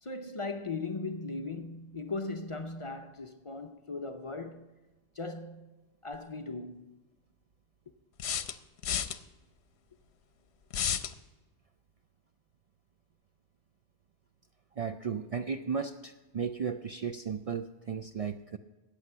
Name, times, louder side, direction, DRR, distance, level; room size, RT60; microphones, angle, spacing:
voice 1, 0.0-4.7 5.1-5.7 6.0-6.9, left 3 dB, 35° left, 0.6 m, -38 dB
sound 1, 6.1-6.2 8.2-9.2 10.7-11.1, left 8 dB, 65° left, 0.9 m, -31 dB
voice 2, 14.8-18.6, right 6 dB, 75° right, 0.3 m, -35 dB
14.0 x 8.9 x 5.5 m
omnidirectional pair, 1.2 m